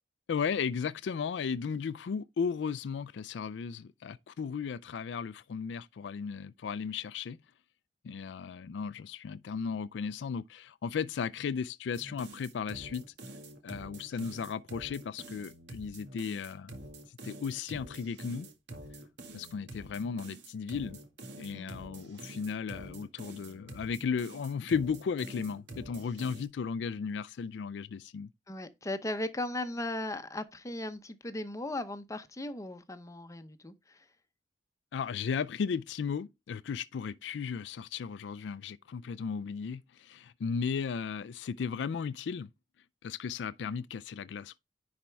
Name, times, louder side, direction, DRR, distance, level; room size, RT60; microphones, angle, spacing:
voice 1, 0.3-7.4 8.0-13.0 13.6-16.7 17.1-18.5 19.3-21.0 21.4-28.3 34.9-42.5 43.0-44.6, left 6 dB, 80° left, 0.4 m, -35 dB
sound 1, 11.9-26.5, right 2 dB, 80° right, 1.8 m, -47 dB
voice 2, 28.5-34.0, left 1 dB, 20° left, 0.7 m, -37 dB
10.0 x 4.3 x 3.4 m
head